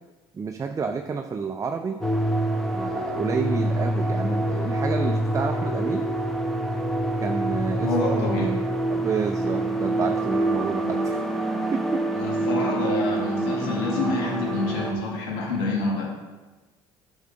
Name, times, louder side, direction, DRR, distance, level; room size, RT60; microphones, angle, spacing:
voice 1, 0.3-2.0 2.7-6.1 7.2-8.6 8.9-11.2 11.7-12.1, right 5 dB, 30° right, 5 dB, 0.5 m, -29 dB
sound 1, 2.0-14.9, right 1 dB, ahead, 1.0 m, -26 dB
voice 2, 7.8-8.5 12.1-16.1, left 2 dB, 90° left, -1 dB, 1.5 m, -28 dB
8.1 x 6.2 x 3.8 m, 1.2 s
supercardioid pair, 75°, 12 cm